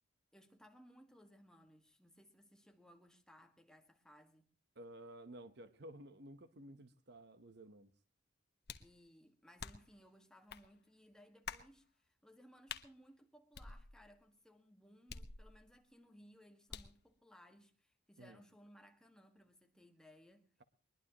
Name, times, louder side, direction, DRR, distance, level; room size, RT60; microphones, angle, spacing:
voice 1, 0.3-4.5 8.8-20.5, equal, 5° left, 1.7 m, -63 dB
voice 2, 4.7-7.9 18.2-18.4, right 1 dB, 50° right, 1.0 m, -54 dB
sound 1, 8.7-9.0 9.6-10.0 10.5-10.7 11.5-11.7 12.7-12.9 13.5-14.2 15.1-15.8 16.7-17.0, left 6 dB, 50° left, 1.2 m, -48 dB
22.0 x 21.5 x 3.0 m
head